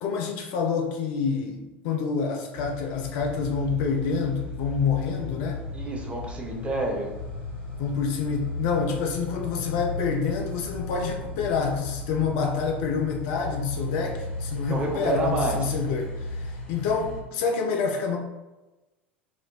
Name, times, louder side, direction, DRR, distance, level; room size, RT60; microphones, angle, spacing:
voice 1, 0.0-5.6 7.8-18.2, left 5 dB, 55° left, 2 dB, 0.5 m, -27 dB
sound 1, 2.6-17.2, left 2 dB, 70° left, 1.5 m, -35 dB
voice 2, 5.7-7.1 14.7-15.7, right 2 dB, 20° right, 0 dB, 0.7 m, -28 dB
4.3 x 2.1 x 2.2 m, 1.1 s
figure-of-eight pair, 75°, 6 cm